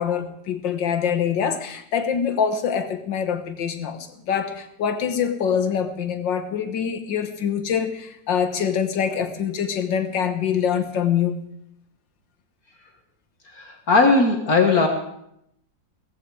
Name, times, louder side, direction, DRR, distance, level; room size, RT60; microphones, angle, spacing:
voice 1, 0.0-11.4, left 7 dB, 80° left, 2.0 m, -24 dB
voice 2, 13.5-14.9, left 3 dB, 55° left, 1.9 m, -18 dB
17.5 x 15.0 x 4.7 m
omnidirectional pair, 2.0 m